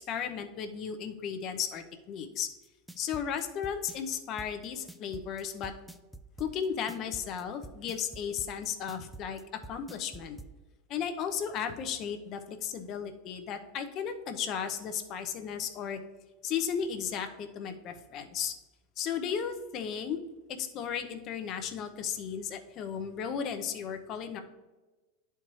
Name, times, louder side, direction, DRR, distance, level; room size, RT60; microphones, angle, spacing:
voice 1, 0.0-2.5 3.0-5.7 6.4-9.4 9.7-10.4 10.9-16.0 16.4-18.5 19.0-20.2 20.5-24.4, left 7 dB, 45° left, 7 dB, 0.8 m, -35 dB
sound 1, 2.6-10.5, right 2 dB, ahead, 0.5 m, -46 dB
10.5 x 4.5 x 3.1 m, 1.2 s
supercardioid pair, 115°, 0 cm